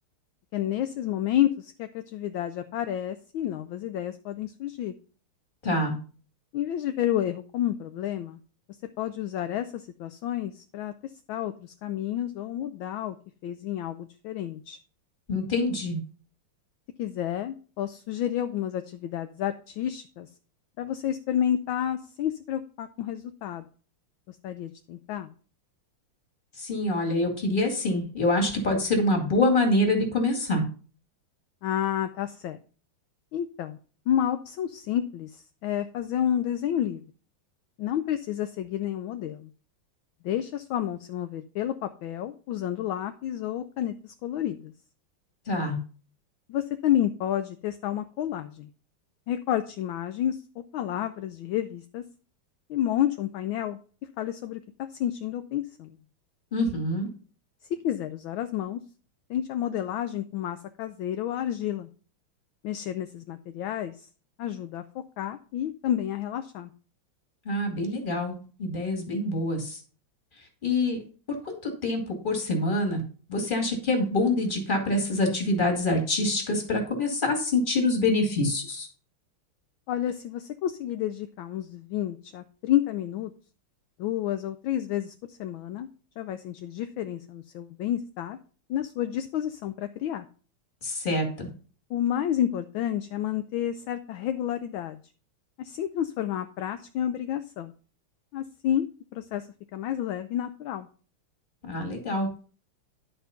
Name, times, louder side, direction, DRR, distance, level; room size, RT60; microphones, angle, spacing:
voice 1, 0.5-4.9 6.5-8.4 9.0-11.0 11.3-13.2 13.4-14.8 17.0-20.3 20.8-23.7 24.3-25.3 31.6-32.6 33.3-33.8 34.1-37.0 37.8-39.5 40.2-44.7 46.5-48.7 49.3-50.4 50.7-52.0 52.7-53.8 54.2-56.0 57.7-58.8 59.3-61.9 62.6-64.1 64.4-66.7 79.9-83.3 84.0-85.9 86.2-88.4 88.7-90.2 91.9-95.0 95.6-97.7 98.3-100.9, left 11 dB, 75° left, 9 dB, 1.3 m, -30 dB
voice 2, 5.6-5.9 15.3-16.0 26.6-30.6 45.5-45.8 56.5-57.1 67.5-69.8 70.6-71.0 71.4-73.0 73.3-78.9 90.8-91.5 101.7-102.3, left 2 dB, 25° left, 2 dB, 2.2 m, -26 dB
10.5 x 4.5 x 5.7 m, 0.39 s
omnidirectional pair, 2.4 m